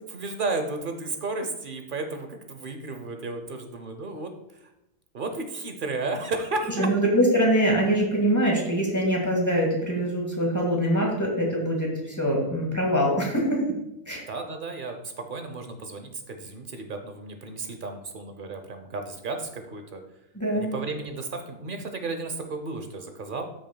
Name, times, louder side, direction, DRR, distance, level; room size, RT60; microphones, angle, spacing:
voice 1, 0.1-4.3 5.1-6.9 14.3-20.0 20.5-23.5, right 3 dB, 45° right, 6 dB, 0.7 m, -33 dB
voice 2, 6.8-13.8 14.1-14.2 20.3-20.7, equal, 10° left, -2 dB, 1.8 m, -23 dB
13.0 x 6.2 x 2.3 m, 0.86 s
omnidirectional pair, 1.7 m